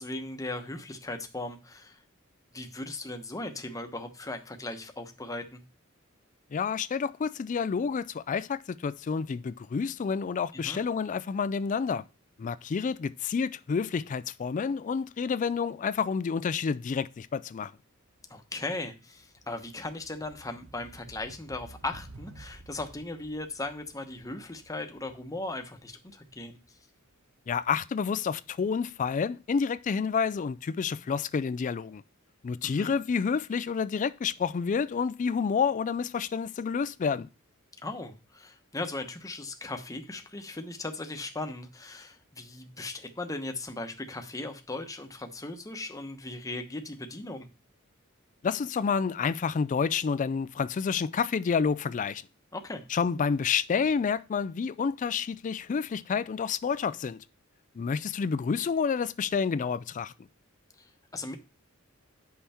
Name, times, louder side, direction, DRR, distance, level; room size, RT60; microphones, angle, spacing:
voice 1, 0.0-2.0 2.5-5.6 10.5-10.8 18.3-26.6 32.6-32.9 37.8-47.5 52.5-52.8 60.8-61.4, left 2 dB, 15° left, 1.0 m, -38 dB
voice 2, 6.5-12.0 12.4-17.7 27.5-32.0 32.4-37.3 48.4-52.2 52.9-57.2 57.8-60.1, left 6 dB, 35° left, 0.3 m, -29 dB
sound 1, 17.9-18.0 18.2-27.1, right 2 dB, 90° right, 1.2 m, -53 dB
9.7 x 5.6 x 4.3 m
head